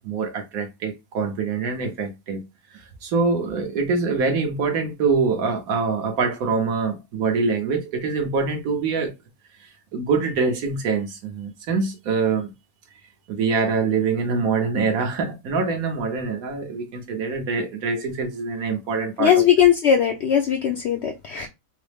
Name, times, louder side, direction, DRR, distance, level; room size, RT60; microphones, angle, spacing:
voice 1, 0.0-2.4 2.7-9.1 9.9-12.5 13.3-19.4, right 4 dB, 75° right, 1.2 m, -24 dB
voice 2, 19.2-21.5, left 9 dB, 70° left, 0.6 m, -19 dB
3.9 x 2.0 x 3.2 m
omnidirectional pair, 1.6 m